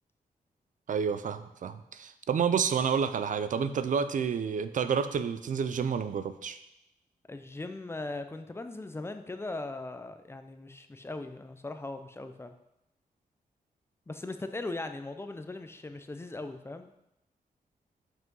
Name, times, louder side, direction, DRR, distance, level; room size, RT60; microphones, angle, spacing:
voice 1, 0.9-6.6, right 6 dB, 60° right, 12 dB, 0.5 m, -29 dB
voice 2, 7.3-12.5 14.1-16.9, left 2 dB, 15° left, 8 dB, 0.5 m, -39 dB
5.6 x 5.6 x 5.4 m, 0.84 s
wide cardioid pair, 120°, 15 cm